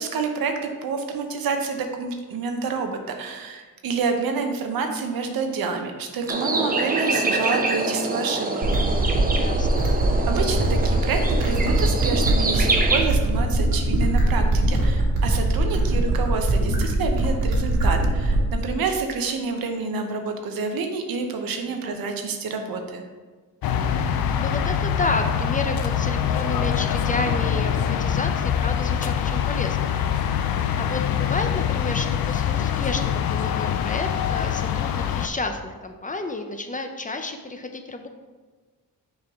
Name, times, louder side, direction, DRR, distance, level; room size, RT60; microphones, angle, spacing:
voice 1, 0.0-8.6 10.3-23.0, right 5 dB, 90° right, 4 dB, 0.8 m, -28 dB
sound 1, 6.3-13.0, right 2 dB, 25° right, 0.7 m, -25 dB
sound 2, 8.6-18.6, right 1 dB, 75° right, 1.5 m, -22 dB
voice 2, 9.4-9.9 21.8-22.0 24.3-29.9 30.8-38.1, left 2 dB, 25° left, 5 dB, 0.6 m, -31 dB
sound 3, 23.6-35.3, left 8 dB, 90° left, 0.5 m, -24 dB
6.2 x 4.5 x 3.5 m, 1.4 s
cardioid pair, 75°, 34 cm